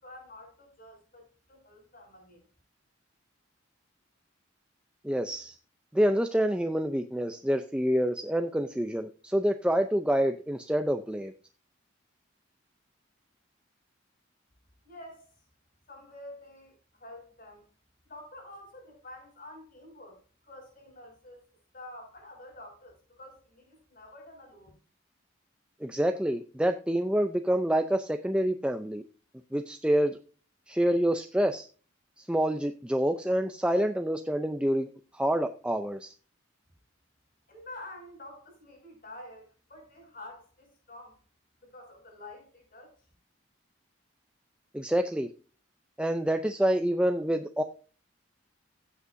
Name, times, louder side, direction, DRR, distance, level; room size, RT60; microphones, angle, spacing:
voice 1, 0.0-2.4 14.8-15.3 15.9-17.7 18.1-20.2 20.4-21.4 21.7-24.7 37.5-41.2 41.6-42.9, left 1 dB, 45° left, 6.0 m, -48 dB
voice 2, 5.0-5.6 5.9-11.3 25.8-29.0 29.5-30.2 30.7-31.7 32.2-34.9 35.1-36.1 44.7-45.3 46.0-47.6, equal, 5° right, 0.4 m, -27 dB
16.0 x 8.2 x 2.6 m
head